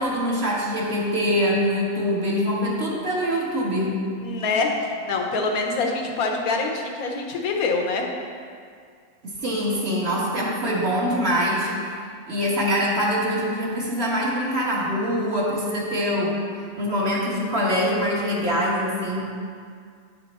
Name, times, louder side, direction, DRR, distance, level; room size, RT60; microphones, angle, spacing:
voice 1, 0.0-4.0 9.2-12.0 12.3-19.2, equal, 50° right, -4 dB, 1.4 m, -24 dB
voice 2, 4.2-8.0, left 3 dB, 85° left, 2 dB, 1.3 m, -25 dB
9.6 x 4.3 x 4.1 m, 2.2 s
omnidirectional pair, 1.5 m